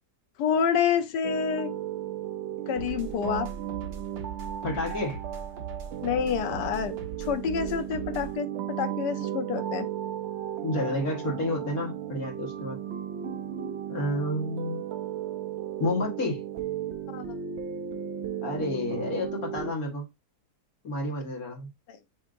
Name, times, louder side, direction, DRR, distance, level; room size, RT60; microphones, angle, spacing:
voice 1, 0.4-1.7 2.7-3.5 6.0-9.9 17.1-17.3 21.9-22.0, left 7 dB, 85° left, 1.3 m, -28 dB
sound 1, 1.2-19.7, right 10 dB, 65° right, 0.6 m, -35 dB
sound 2, 2.8-8.4, right 7 dB, 85° right, 1.6 m, -40 dB
voice 2, 4.6-5.2 10.6-12.8 13.9-14.8 15.8-16.4 18.4-20.1 20.8-21.7, left 1 dB, 60° left, 1.9 m, -30 dB
7.3 x 2.8 x 2.5 m
omnidirectional pair, 1.8 m